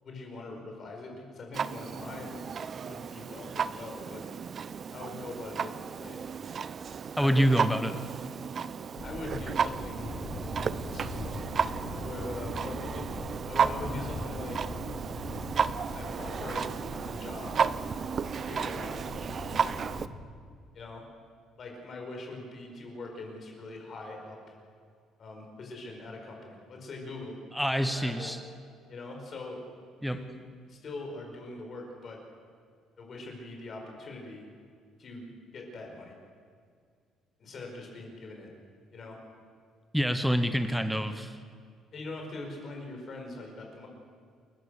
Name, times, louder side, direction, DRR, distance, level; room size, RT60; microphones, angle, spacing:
voice 1, 0.0-2.5 2.9-4.3 4.9-6.2 7.2-7.4 9.0-10.1 10.8-11.1 12.0-14.7 15.9-16.7 17.0-17.7 18.3-19.0 20.7-21.1 21.6-24.6 25.2-27.4 27.9-28.3 28.9-29.6 30.1-30.3 30.7-32.2 33.0-34.4 35.0-36.2 37.4-38.5 38.9-39.2 41.9-43.9, left 2 dB, 40° left, 2 dB, 5.0 m, -42 dB
Clock, 1.5-20.1, right 6 dB, 35° right, 0.6 m, -33 dB
voice 2, 7.2-8.0 27.5-28.4 30.0-30.2 39.9-41.3, equal, ahead, 9 dB, 1.0 m, -26 dB
Thunder, 9.0-20.2, left 2 dB, 60° left, 7.9 m, -41 dB
28.5 x 15.0 x 6.5 m, 2.1 s
cardioid pair, 155°, 0 cm